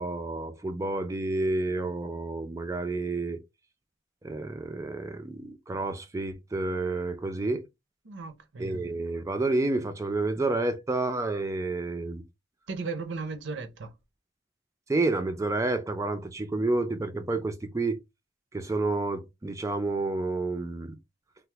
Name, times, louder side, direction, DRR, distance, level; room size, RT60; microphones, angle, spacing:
voice 1, 0.0-3.4 4.2-7.6 8.6-12.2 14.9-18.0 18.5-21.0, right 2 dB, 15° right, 0.3 m, -29 dB
voice 2, 8.0-8.9 12.7-13.9, right 4 dB, 65° right, 0.6 m, -36 dB
3.3 x 2.0 x 2.9 m
head